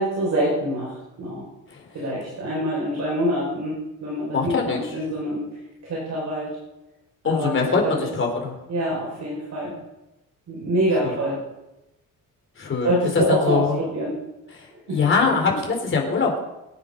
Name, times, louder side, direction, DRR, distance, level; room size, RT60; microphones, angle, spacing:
voice 1, 0.0-1.4 1.9-5.5 5.8-6.6 7.2-7.6 7.8-8.1 8.7-9.8 10.5-11.4 12.8-14.2 14.9-15.0, right 1 dB, 55° right, -3 dB, 5.3 m, -25 dB
voice 2, 4.3-5.0 7.2-8.6 11.0-11.1 12.6-13.8 14.5-16.4, left 4 dB, 40° left, 1 dB, 4.1 m, -23 dB
23.0 x 9.7 x 5.3 m, 0.95 s
cardioid pair, 160°, 33 cm